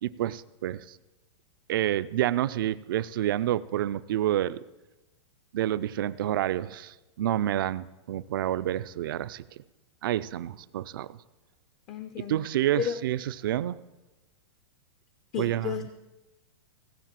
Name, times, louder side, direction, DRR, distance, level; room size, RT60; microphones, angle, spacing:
voice 1, 0.0-1.0 1.7-4.6 5.5-9.6 10.0-11.2 12.3-13.8 15.4-15.8, right 12 dB, 50° right, 15 dB, 0.4 m, -29 dB
voice 2, 11.9-12.4 12.8-13.0 15.3-15.9, left 8 dB, 15° left, 8 dB, 0.4 m, -32 dB
15.5 x 7.5 x 7.4 m, 1.1 s
supercardioid pair, 175°, 15 cm